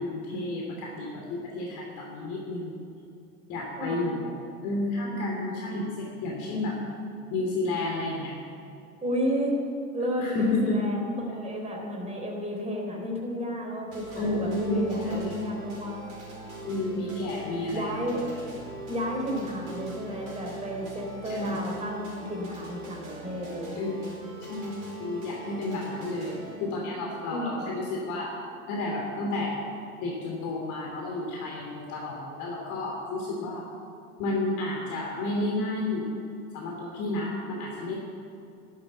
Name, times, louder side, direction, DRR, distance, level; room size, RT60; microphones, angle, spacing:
voice 1, 0.0-2.8 3.5-4.3 4.6-6.8 7.3-8.4 10.2-10.8 14.2-15.3 16.6-18.4 21.2-21.6 23.7-28.3 28.7-29.7 30.0-33.6 34.2-36.1 36.5-38.0, left 2 dB, 45° left, -1 dB, 3.1 m, -31 dB
voice 2, 3.8-4.1 9.0-9.6 9.9-16.1 17.7-18.2 18.9-23.8 27.3-27.7, equal, 15° right, 0 dB, 3.8 m, -32 dB
sound 1, 13.9-26.6, right 1 dB, 70° right, 4.9 m, -42 dB
13.0 x 12.0 x 8.7 m, 2.6 s
figure-of-eight pair, 85°, 42 cm